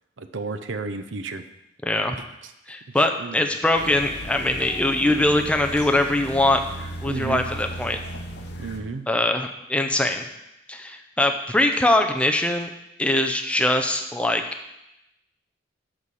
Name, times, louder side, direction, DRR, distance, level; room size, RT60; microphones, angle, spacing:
voice 1, 0.2-1.4 2.1-2.5 3.0-3.9 7.1-7.4 8.6-9.1, right 3 dB, 85° right, 9 dB, 0.7 m, -33 dB
voice 2, 1.8-2.2 2.7-6.6 7.0-8.0 9.1-10.3 10.7-12.7 13.0-14.4, left 1 dB, 5° left, 4 dB, 0.6 m, -22 dB
sound 1, 3.7-8.8, equal, 60° left, 0.9 m, -36 dB
12.5 x 4.2 x 4.9 m, 0.87 s
head